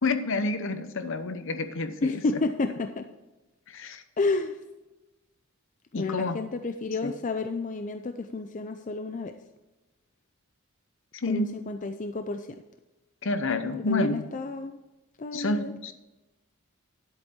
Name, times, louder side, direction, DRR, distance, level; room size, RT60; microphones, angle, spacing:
voice 1, 0.0-2.2 3.7-4.0 5.9-6.4 7.0-7.1 11.1-11.5 13.2-14.3 15.3-15.9, left 2 dB, 65° left, 10 dB, 0.9 m, -29 dB
voice 2, 2.0-3.1 4.2-4.6 5.9-9.3 11.3-12.5 13.7-14.8 15.2-15.7, left 3 dB, 35° left, 8 dB, 0.5 m, -30 dB
10.5 x 8.1 x 4.4 m, 1.1 s
head